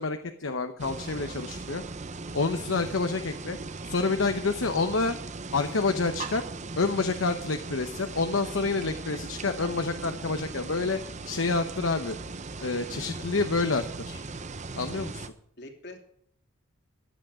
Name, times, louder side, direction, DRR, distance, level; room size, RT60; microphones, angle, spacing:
voice 1, 0.0-1.8 2.3-3.6 3.8-5.2 5.5-6.4 6.8-11.0 11.2-12.2 12.6-14.2 14.7-15.1, left 3 dB, 75° left, 8 dB, 0.9 m, -28 dB
sound 1, 0.8-15.3, right 3 dB, 35° right, 0.8 m, -38 dB
voice 2, 12.8-13.3 14.8-15.1 15.6-16.0, left 1 dB, 60° left, 3 dB, 2.8 m, -46 dB
15.0 x 10.5 x 4.9 m, 0.70 s
head